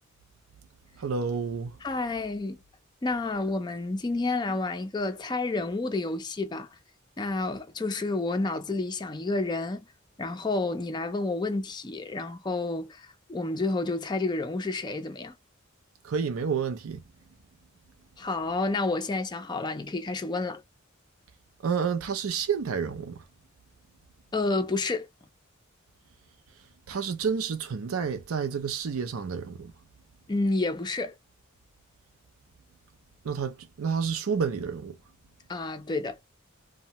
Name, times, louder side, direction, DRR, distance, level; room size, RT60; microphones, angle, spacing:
voice 1, 1.0-1.7 16.0-17.0 21.6-23.2 26.9-29.7 33.2-35.0, right 6 dB, 85° right, 0.5 m, -29 dB
voice 2, 1.8-2.6 3.0-6.7 7.2-9.9 10.2-15.3 18.2-20.6 24.3-25.1 30.3-31.2 35.5-36.2, left 3 dB, 20° left, 0.4 m, -30 dB
2.7 x 2.1 x 2.8 m
head